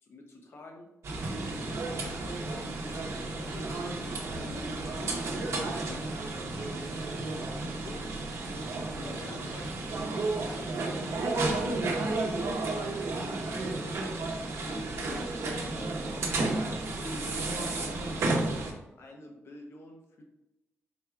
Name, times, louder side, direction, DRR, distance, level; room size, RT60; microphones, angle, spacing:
voice 1, 0.0-0.9 2.0-3.1 3.4-4.2 4.5-6.0 7.8-8.1 9.0-9.7 10.5-11.9 13.2-15.4 15.8-16.5 16.9-18.6 19.0-20.2, left 1 dB, 55° left, 1 dB, 0.7 m, -47 dB
sound 1, 1.0-18.7, right 2 dB, 70° right, 0.8 m, -32 dB
4.1 x 2.3 x 4.5 m, 0.94 s
wide cardioid pair, 150°, 5 cm